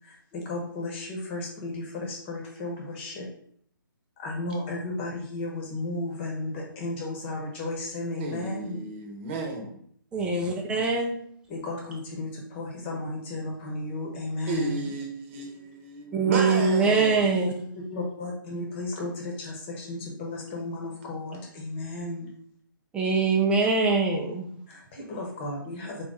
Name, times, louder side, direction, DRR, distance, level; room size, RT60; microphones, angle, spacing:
voice 1, 0.0-3.2 4.2-8.8 11.5-14.9 17.7-22.3 24.7-26.0, left 2 dB, 30° left, 1.3 m, -34 dB
voice 2, 8.2-9.8 14.5-17.3, right 2 dB, 30° right, 1.1 m, -33 dB
voice 3, 10.1-11.2 16.1-17.5 22.9-24.5, right 4 dB, 10° right, 0.6 m, -23 dB
4.1 x 3.0 x 3.6 m
hypercardioid pair, 145°, 12 cm